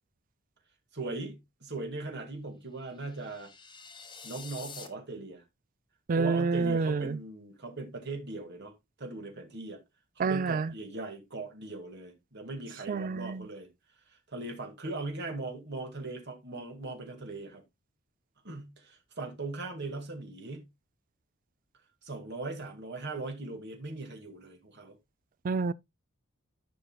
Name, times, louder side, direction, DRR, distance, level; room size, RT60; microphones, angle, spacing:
voice 1, 0.9-3.5 4.2-5.4 6.2-8.7 9.0-9.8 10.2-13.7 14.1-17.6 18.4-20.6 22.0-25.0, right 2 dB, 55° right, 2.1 m, -39 dB
sound 1, 2.9-4.9, left 5 dB, 25° left, 1.1 m, -47 dB
voice 2, 6.1-7.2 10.2-10.7 12.9-13.4 25.4-25.7, right 4 dB, 40° right, 0.4 m, -28 dB
14.0 x 5.4 x 2.3 m
head